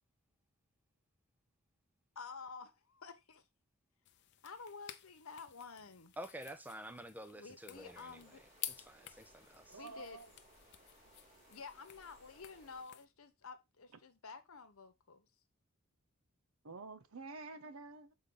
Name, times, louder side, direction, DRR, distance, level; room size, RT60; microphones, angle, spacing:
voice 1, 2.1-3.4 4.4-6.1 7.3-8.4 9.7-10.2 11.5-15.3, left 5 dB, 85° left, 1.0 m, -51 dB
sound 1, 4.0-13.0, left 13 dB, 55° left, 0.5 m, -52 dB
voice 2, 6.2-8.5 8.8-9.8, right 1 dB, 10° right, 0.6 m, -49 dB
sound 2, 7.7-12.8, right 1 dB, 35° right, 2.2 m, -64 dB
voice 3, 9.7-10.3 16.6-18.1, right 3 dB, 85° right, 0.8 m, -49 dB
6.7 x 3.9 x 3.7 m
head